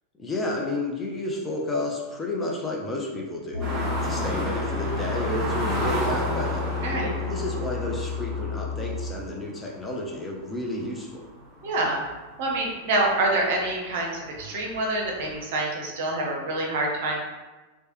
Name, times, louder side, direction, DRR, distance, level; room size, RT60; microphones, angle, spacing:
voice 1, 0.2-3.6 4.0-6.7 7.2-11.3, left 2 dB, 15° left, -2 dB, 0.5 m, -31 dB
sound 1, 3.5-9.1, left 5 dB, 60° left, 1.1 m, -31 dB
sound 2, 3.6-12.7 13.1-13.2 13.7-15.4, right 1 dB, 20° right, 0.9 m, -33 dB
voice 2, 11.6-12.0 12.4-17.2, right 2 dB, 50° right, -1 dB, 0.6 m, -26 dB
3.1 x 2.2 x 2.9 m, 1.2 s
figure-of-eight pair, 90°, 0 cm